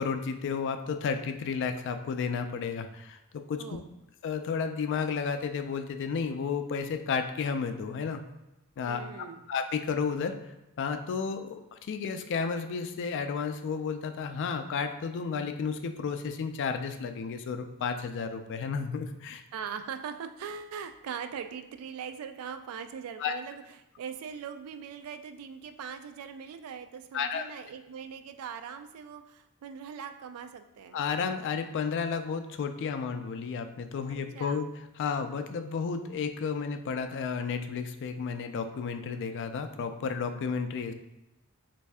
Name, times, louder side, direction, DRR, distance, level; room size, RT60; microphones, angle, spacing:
voice 1, 0.0-3.2 3.5-3.8 4.2-8.2 8.8-9.0 9.5-10.3 10.8-19.4 23.2-23.3 27.1-27.4 30.9-34.7 35.0-40.9, left 5 dB, 55° left, 8 dB, 0.3 m, -32 dB
voice 2, 8.9-9.5 19.5-23.6 24.0-31.0 34.1-34.6 40.3-40.6, right 7 dB, 70° right, 9 dB, 0.3 m, -41 dB
3.1 x 2.6 x 3.4 m, 0.95 s
head